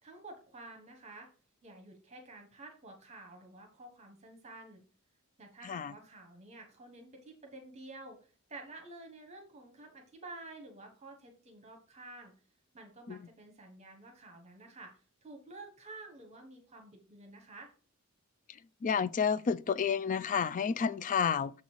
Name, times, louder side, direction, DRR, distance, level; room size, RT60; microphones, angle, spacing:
voice 1, 0.0-1.3 1.6-4.8 5.4-12.3 12.7-14.9 15.2-17.7, right 2 dB, 30° right, 1.4 m, -50 dB
voice 2, 18.8-21.5, left 6 dB, 35° left, 0.3 m, -30 dB
7.0 x 4.0 x 4.6 m
head